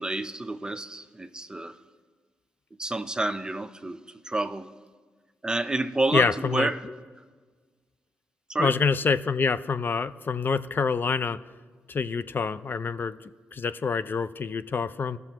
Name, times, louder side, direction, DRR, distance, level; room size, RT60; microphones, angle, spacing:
voice 1, 0.0-1.8 2.8-4.0 4.2-4.7 5.4-6.8 8.5-8.8, right 2 dB, 15° right, 10 dB, 0.7 m, -29 dB
voice 2, 6.1-6.9 8.6-11.4 11.9-15.2, left 5 dB, 45° left, 14 dB, 0.4 m, -27 dB
17.0 x 6.8 x 3.0 m, 1.5 s
supercardioid pair, 50°, 5 cm